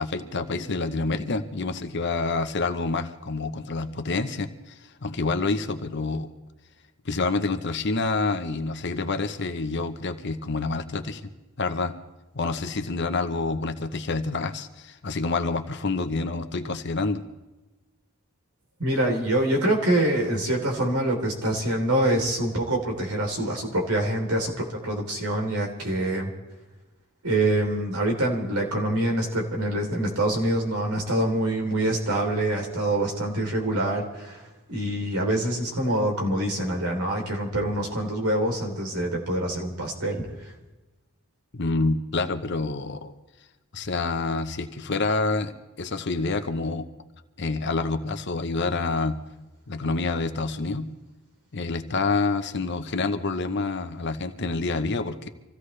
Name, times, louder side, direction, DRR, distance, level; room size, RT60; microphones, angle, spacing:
voice 1, 0.0-6.3 7.0-11.2 11.6-11.9 12.3-17.2 41.5-43.1 43.7-46.8 47.4-49.2 49.7-50.8 51.5-55.3, left 3 dB, 50° left, 9 dB, 0.9 m, -27 dB
voice 2, 18.8-26.3 27.2-34.4 34.7-40.5, right 1 dB, 85° right, 0 dB, 3.5 m, -25 dB
26.0 x 15.5 x 3.3 m, 1.1 s
head